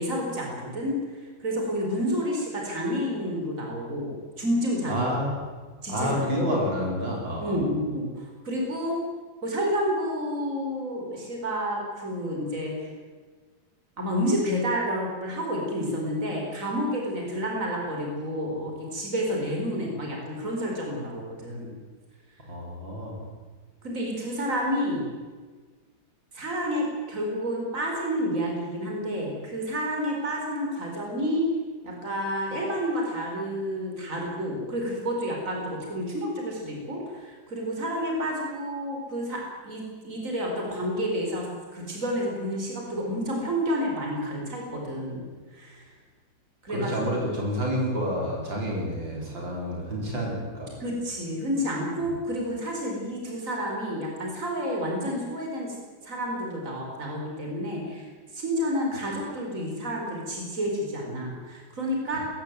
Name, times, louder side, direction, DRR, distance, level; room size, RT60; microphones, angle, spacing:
voice 1, 0.0-5.1 5.8-6.5 7.4-9.0 9.4-12.9 14.0-21.7 23.8-25.1 26.3-31.5 31.8-45.2 45.5-45.9 46.6-46.9 50.8-55.7 56.0-58.1 58.3-62.2, equal, 40° right, 0 dB, 5.0 m, -30 dB
voice 2, 4.9-5.4 5.9-7.6 22.5-23.1 46.7-50.8 52.0-52.1, equal, 75° right, -2 dB, 5.5 m, -29 dB
20.5 x 15.0 x 9.3 m, 1.4 s
omnidirectional pair, 2.1 m